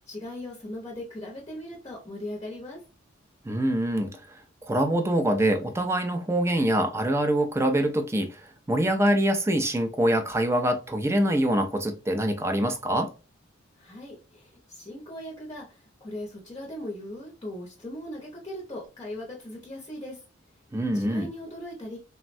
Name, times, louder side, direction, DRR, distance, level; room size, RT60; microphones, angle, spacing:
voice 1, 0.0-2.8 13.8-20.2 20.9-22.0, left 1 dB, 20° left, 0.7 m, -39 dB
voice 2, 3.4-4.4 4.6-13.1 20.7-21.3, right 1 dB, 15° right, 0.4 m, -25 dB
3.3 x 2.1 x 2.5 m
head